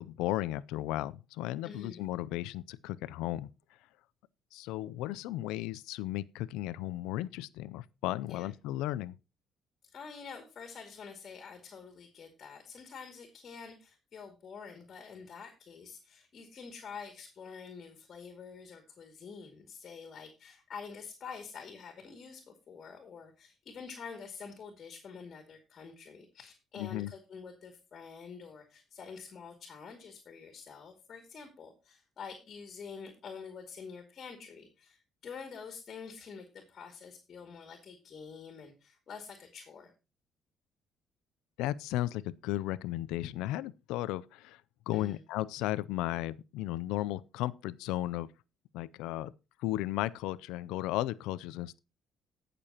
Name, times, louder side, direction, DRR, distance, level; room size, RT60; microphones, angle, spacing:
voice 1, 0.0-3.5 4.5-9.2 26.8-27.1 41.6-48.3 48.7-49.3 49.6-51.8, left 15 dB, 85° left, 0.4 m, -35 dB
voice 2, 1.6-2.0 8.3-8.5 9.8-39.9 44.9-45.2, left 5 dB, 50° left, 2.4 m, -47 dB
18.5 x 6.8 x 2.9 m
supercardioid pair, 75°, 0 cm